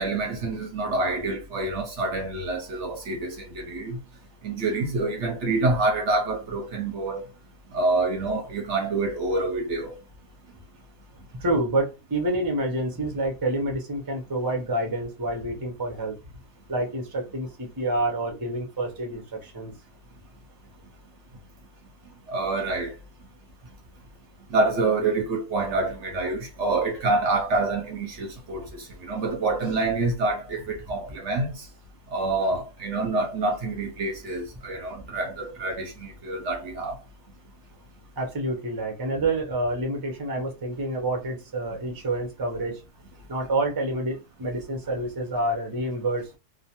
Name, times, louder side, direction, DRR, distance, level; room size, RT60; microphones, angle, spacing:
voice 1, 0.0-4.0 4.4-7.2 7.7-10.0 22.3-22.9 24.5-31.7 32.1-37.0, right 3 dB, 60° right, 0.8 m, -27 dB
voice 2, 11.4-16.2 16.7-19.7 38.2-42.8 43.3-46.4, right 1 dB, 35° right, 0.3 m, -28 dB
2.4 x 2.2 x 2.8 m
omnidirectional pair, 1.6 m